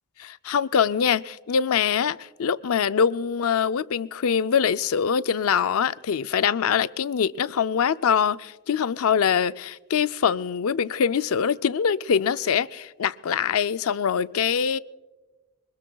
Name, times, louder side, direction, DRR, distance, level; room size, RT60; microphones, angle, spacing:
voice 1, 0.2-14.8, left 7 dB, 85° left, 0.4 m, -23 dB
24.5 x 22.0 x 2.3 m
head